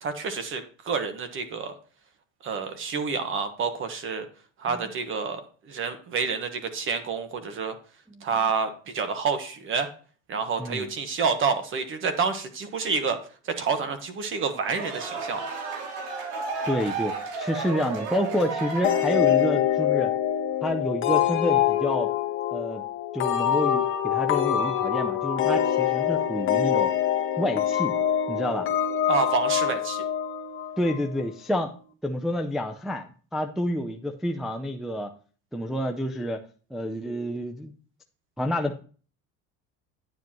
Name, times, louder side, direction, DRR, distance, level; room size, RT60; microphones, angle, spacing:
voice 1, 0.0-1.7 2.4-4.3 4.6-7.7 8.2-9.9 10.3-13.2 13.4-15.4 29.1-30.0, right 5 dB, 35° right, 9 dB, 1.2 m, -28 dB
voice 2, 10.6-10.9 16.7-20.1 20.6-22.1 22.5-22.9 23.1-26.9 27.4-28.0 28.3-28.7 30.8-31.7 32.0-35.1 35.5-36.4 36.7-37.7 38.4-38.8, left 1 dB, ahead, 3 dB, 0.3 m, -29 dB
sound 1, 14.5-19.6, right 4 dB, 80° right, 2.5 m, -33 dB
sound 2, 18.8-31.2, left 10 dB, 35° left, 1.1 m, -25 dB
9.2 x 7.4 x 2.9 m, 0.40 s
cardioid pair, 140°, 35 cm